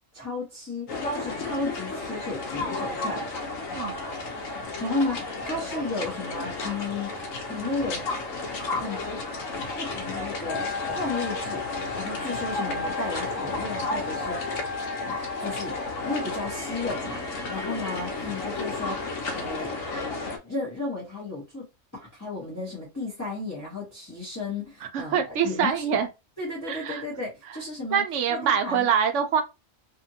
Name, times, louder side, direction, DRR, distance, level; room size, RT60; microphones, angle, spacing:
voice 1, 0.1-3.2 4.8-8.0 8.7-9.2 9.8-11.6 11.9-14.7 15.0-15.8 16.0-19.1 19.3-19.7 20.4-21.7 21.9-25.9 26.4-28.0 28.3-28.9, left 3 dB, 15° left, 0.9 m, -34 dB
sound 1, 0.9-20.4, left 2 dB, 85° left, 1.1 m, -32 dB
Wind instrument woodwind instrument, 10.4-16.6, left 5 dB, 60° left, 0.4 m, -36 dB
voice 2, 24.8-26.1 26.7-27.0 27.9-29.4, right 7 dB, 70° right, 0.9 m, -25 dB
2.8 x 2.5 x 2.7 m
omnidirectional pair, 1.3 m